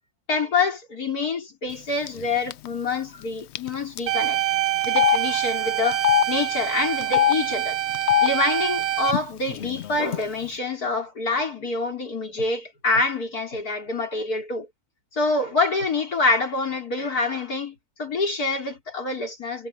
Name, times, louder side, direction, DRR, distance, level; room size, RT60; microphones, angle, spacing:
voice 1, 0.3-4.4 4.8-7.8 8.2-14.7 15.1-19.7, left 3 dB, 85° left, 5.0 m, -26 dB
Telephone, 2.1-2.2 2.5-2.7 3.5-3.7 4.0-4.1 4.8-5.2 5.9-6.2 7.0-7.3 7.9-8.3 9.1-9.2 9.5-10.2, left 12 dB, 65° left, 0.7 m, -20 dB
sound 1, 4.1-9.1, right 13 dB, 90° right, 1.4 m, -25 dB
omnidirectional pair, 1.6 m